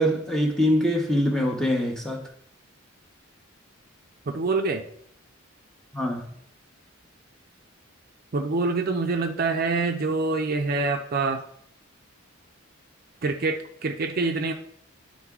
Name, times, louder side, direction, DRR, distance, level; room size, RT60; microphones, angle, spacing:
voice 1, 0.0-2.2 5.9-6.2, equal, ahead, 0.9 m, -23 dB
voice 2, 4.3-4.9 8.3-11.4 13.2-14.5, right 3 dB, 45° right, 0.5 m, -25 dB
10.5 x 3.8 x 3.6 m
head